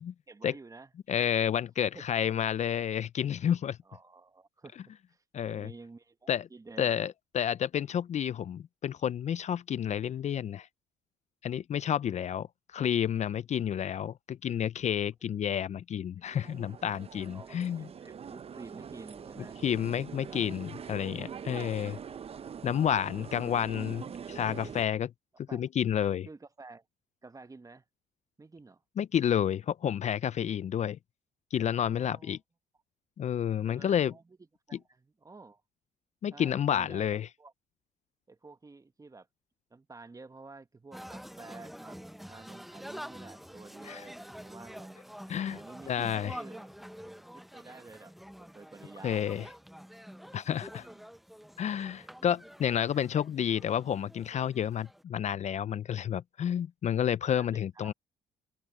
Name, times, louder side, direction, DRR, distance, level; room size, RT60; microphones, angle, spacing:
voice 1, 0.3-0.9 1.9-2.0 3.8-4.8 5.1-6.9 12.0-12.1 17.3-19.6 20.2-20.5 21.5-22.2 25.5-25.6 26.2-26.8 27.2-27.8 28.4-28.8 31.7-32.4 33.6-34.4 34.7-35.6 36.3-37.5 38.3-39.3 39.7-45.0 45.5-46.7 47.3-48.1 48.4-49.5 50.8-51.1 52.9-53.0 57.2-57.9, right 3 dB, 20° right, 1.4 m, -51 dB
voice 2, 1.1-3.8 5.3-5.7 6.3-6.5 6.8-10.7 11.4-12.5 12.7-17.9 19.6-22.0 22.6-25.1 25.5-26.3 29.0-31.0 31.5-32.4 33.2-34.1 36.2-37.3 43.8-44.0 45.3-45.6 45.9-46.4 49.0-49.4 50.3-50.9 51.6-57.9, left 9 dB, 45° left, 0.6 m, -30 dB
sound 1, 16.3-24.9, right 7 dB, 40° right, 0.8 m, -44 dB
sound 2, 40.9-55.0, equal, ahead, 0.8 m, -47 dB
open air
supercardioid pair, 75°, 16 cm